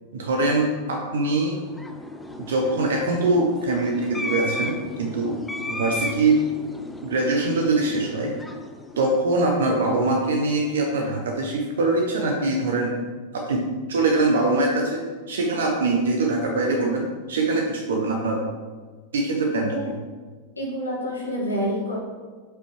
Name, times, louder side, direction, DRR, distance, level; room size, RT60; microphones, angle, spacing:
voice 1, 0.1-1.6 2.4-5.4 5.7-6.4 7.0-8.3 9.0-12.9 13.3-15.0 15.3-18.4 19.1-19.9, right 2 dB, 65° right, 0 dB, 0.9 m, -23 dB
sound 1, 1.4-10.0, left 2 dB, 5° left, 0.5 m, -35 dB
voice 2, 20.6-21.9, equal, 80° left, -4 dB, 1.8 m, -27 dB
8.0 x 5.3 x 3.1 m, 1.4 s
figure-of-eight pair, 90°, 0 cm